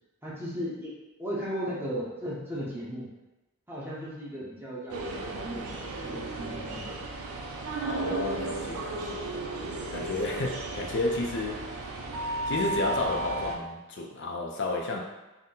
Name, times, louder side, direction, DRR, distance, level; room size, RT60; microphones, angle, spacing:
voice 1, 0.2-0.9 1.2-3.1 3.7-7.0, equal, 10° right, -6 dB, 0.8 m, -36 dB
sound 1, 4.9-13.6, right 2 dB, 80° right, 0.6 m, -34 dB
voice 2, 7.8-9.1 9.9-11.6 12.5-15.0, left 2 dB, 50° left, 0 dB, 0.4 m, -31 dB
4.3 x 2.1 x 3.7 m, 1.0 s
head